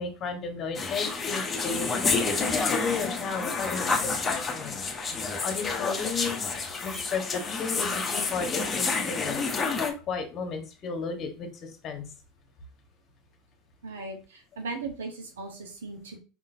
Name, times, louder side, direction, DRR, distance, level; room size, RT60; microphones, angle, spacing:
voice 1, 0.0-5.1 5.4-6.5 6.8-12.0, left 5 dB, 45° left, 4 dB, 1.3 m, -34 dB
sound 1, 0.7-9.9, left 4 dB, 25° left, 1.0 m, -29 dB
voice 2, 13.8-16.2, right 3 dB, 80° right, 3 dB, 1.2 m, -38 dB
5.0 x 3.7 x 2.7 m, 0.32 s
hypercardioid pair, 80°, 0 cm